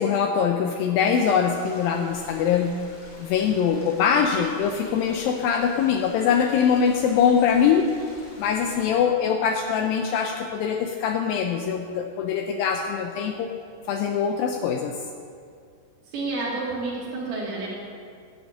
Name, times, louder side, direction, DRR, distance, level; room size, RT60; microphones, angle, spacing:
voice 1, 0.0-2.8 3.2-7.9 8.4-13.5 13.9-15.0, left 7 dB, 85° left, 4 dB, 2.0 m, -23 dB
sound 1, 1.2-8.9, left 1 dB, 45° left, 4.2 m, -47 dB
voice 2, 16.1-17.7, right 3 dB, 55° right, -5 dB, 3.7 m, -29 dB
12.0 x 6.1 x 8.6 m, 2.3 s
omnidirectional pair, 4.8 m